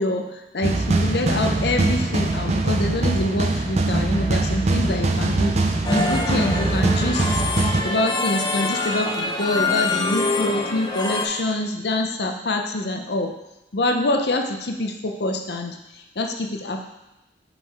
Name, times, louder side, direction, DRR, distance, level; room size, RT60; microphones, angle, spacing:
voice 1, 0.0-13.3 13.7-16.8, left 1 dB, 65° left, 4 dB, 0.7 m, -25 dB
sound 1, 0.6-7.8, right 2 dB, 40° right, 0.5 m, -22 dB
sound 2, 5.8-11.3, left 3 dB, 25° left, 0.6 m, -25 dB
5.5 x 5.0 x 4.7 m, 0.95 s
head